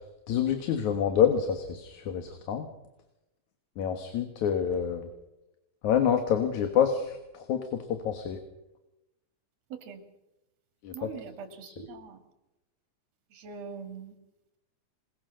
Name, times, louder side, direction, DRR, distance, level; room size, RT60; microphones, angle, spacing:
voice 1, 0.3-2.7 3.8-5.1 5.8-8.4 10.8-11.1 11.6-11.7, left 8 dB, 70° left, 7 dB, 2.9 m, -27 dB
voice 2, 9.7-10.0 10.9-12.2 13.3-14.1, right 6 dB, 55° right, 7 dB, 3.3 m, -42 dB
27.0 x 19.5 x 6.4 m, 0.95 s
omnidirectional pair, 3.6 m